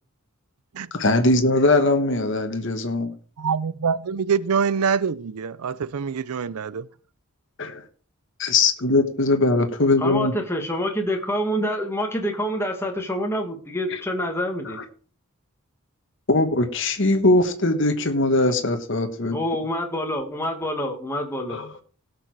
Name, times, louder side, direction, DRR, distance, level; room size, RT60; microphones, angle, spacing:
voice 1, 0.9-3.1 7.6-7.8 8.4-10.3 13.9-14.0 16.3-19.4 21.5-21.7, left 2 dB, 55° left, 1.2 m, -20 dB
voice 2, 3.4-6.9, right 6 dB, 85° right, 0.5 m, -25 dB
voice 3, 10.0-14.8 19.3-21.6, equal, 10° left, 1.7 m, -27 dB
17.5 x 6.7 x 4.7 m
head